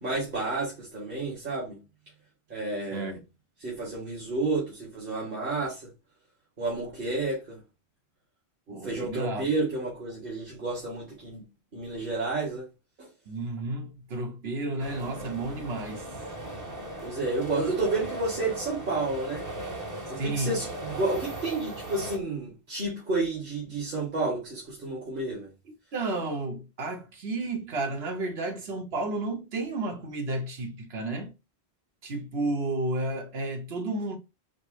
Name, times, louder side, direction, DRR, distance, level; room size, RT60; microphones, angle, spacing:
voice 1, 0.0-1.8 2.5-3.1 3.6-5.9 6.6-7.6 8.7-11.4 11.7-12.7 13.0-13.1 17.0-19.4 20.1-25.5, right 3 dB, 55° right, 2.0 m, -31 dB
voice 2, 2.9-3.3 8.7-9.5 13.3-16.1 20.2-20.6 25.9-31.3 32.0-34.2, right 2 dB, 75° right, 1.3 m, -32 dB
sound 1, 14.8-22.2, right 1 dB, 20° right, 0.9 m, -38 dB
5.0 x 2.1 x 4.6 m
omnidirectional pair, 1.1 m